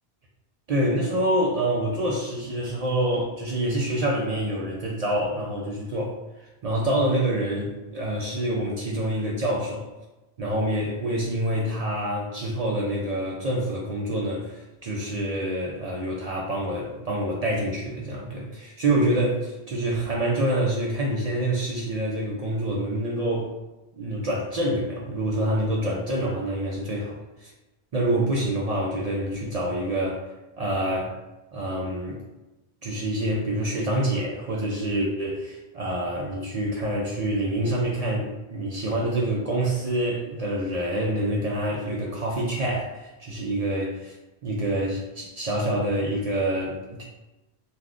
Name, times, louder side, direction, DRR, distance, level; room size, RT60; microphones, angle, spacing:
voice 1, 0.7-6.2 6.6-9.9 10.4-23.5 23.9-27.5 27.9-30.2 30.6-31.1 31.5-32.2 32.8-44.1 44.4-47.0, right 1 dB, 55° right, -3 dB, 0.4 m, -26 dB
3.4 x 2.4 x 2.4 m, 1.0 s
omnidirectional pair, 1.1 m